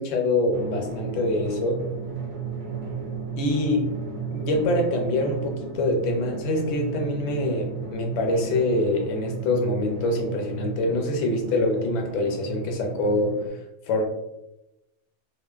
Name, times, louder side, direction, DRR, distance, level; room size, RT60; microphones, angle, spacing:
voice 1, 0.0-1.8 3.4-3.8 4.3-13.4 13.9-14.0, left 2 dB, 75° left, 2 dB, 0.9 m, -25 dB
Drum, 0.5-13.5, right 5 dB, 55° right, 0.5 m, -33 dB
2.4 x 2.2 x 2.3 m, 0.90 s
omnidirectional pair, 1.3 m